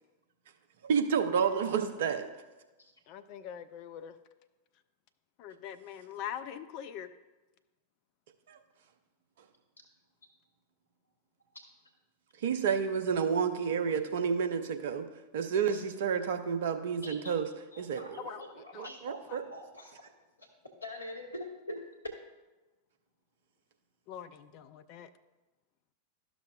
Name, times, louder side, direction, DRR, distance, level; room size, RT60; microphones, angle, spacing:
voice 1, 0.9-2.3 8.5-8.6 12.4-15.0 15.3-17.5 17.8-18.3 18.7-19.4, right 6 dB, 55° right, 7 dB, 0.6 m, -30 dB
voice 2, 3.1-4.1 5.4-7.1 18.2-18.4 18.7-18.9 24.1-25.1, left 9 dB, 45° left, 11 dB, 0.4 m, -43 dB
voice 3, 17.0-17.4 17.7-20.0 20.4-20.5 20.8-21.8, left 1 dB, 80° left, 1 dB, 1.1 m, -45 dB
12.5 x 6.1 x 2.4 m, 1.1 s
figure-of-eight pair, 90°, 0 cm